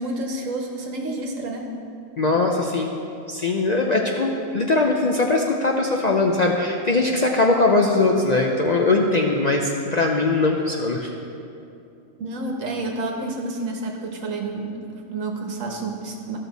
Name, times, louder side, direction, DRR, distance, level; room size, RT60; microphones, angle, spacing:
voice 1, 0.0-1.7 12.2-16.4, right 2 dB, 80° right, 2 dB, 1.5 m, -29 dB
voice 2, 2.2-2.9 3.3-11.1, left 3 dB, 50° left, 0 dB, 0.5 m, -21 dB
13.5 x 6.5 x 4.0 m, 2.7 s
omnidirectional pair, 1.3 m